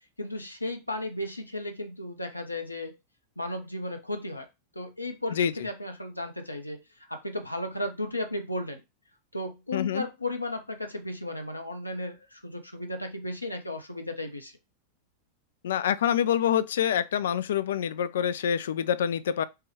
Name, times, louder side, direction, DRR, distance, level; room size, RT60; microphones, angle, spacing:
voice 1, 0.2-2.9 3.4-4.5 4.7-6.8 7.1-8.8 9.3-14.5, left 1 dB, 85° left, 0.7 m, -34 dB
voice 2, 9.7-10.1 15.6-19.4, left 9 dB, 60° left, 0.3 m, -26 dB
4.7 x 2.3 x 3.1 m
figure-of-eight pair, 90°, 0 cm